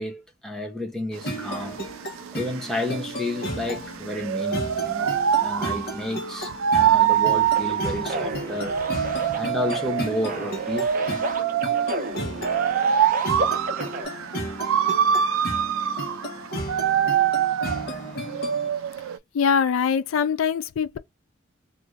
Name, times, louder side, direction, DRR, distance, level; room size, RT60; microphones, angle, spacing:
voice 1, 0.0-1.8 2.3-8.8 9.3-11.2 12.4-12.5 12.9-13.0, left 1 dB, ahead, 0.7 m, -31 dB
sound 1, 1.2-18.7, equal, 50° left, 1.0 m, -34 dB
sound 2, 1.2-19.2, right 9 dB, 85° right, 0.3 m, -25 dB
sound 3, 7.6-14.1, right 2 dB, 40° right, 0.6 m, -33 dB
voice 2, 19.3-21.0, left 6 dB, 85° left, 0.4 m, -22 dB
2.5 x 2.5 x 3.2 m
head